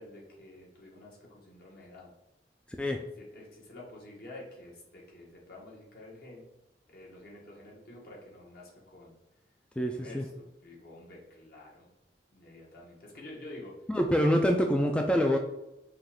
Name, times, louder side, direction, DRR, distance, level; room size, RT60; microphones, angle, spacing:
voice 1, 0.0-2.1 3.2-6.4 6.9-9.2 9.9-11.9 12.3-13.7 14.3-14.4, left 1 dB, 60° left, -3 dB, 1.5 m, -49 dB
voice 2, 9.8-10.3 13.9-15.4, equal, 5° left, 2 dB, 0.3 m, -26 dB
5.6 x 2.5 x 3.6 m, 0.91 s
head